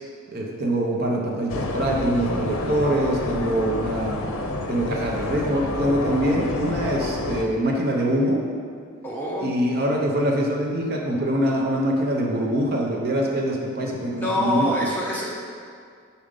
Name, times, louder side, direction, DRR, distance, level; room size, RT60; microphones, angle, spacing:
voice 1, 0.3-4.2 4.7-8.4 9.4-14.9, right 1 dB, 45° right, -1 dB, 0.7 m, -24 dB
sound 1, 1.5-7.4, left 2 dB, 85° left, 0.6 m, -29 dB
voice 2, 9.0-9.5 14.2-15.2, equal, 10° left, -5 dB, 0.8 m, -25 dB
4.9 x 4.2 x 5.2 m, 2.2 s
head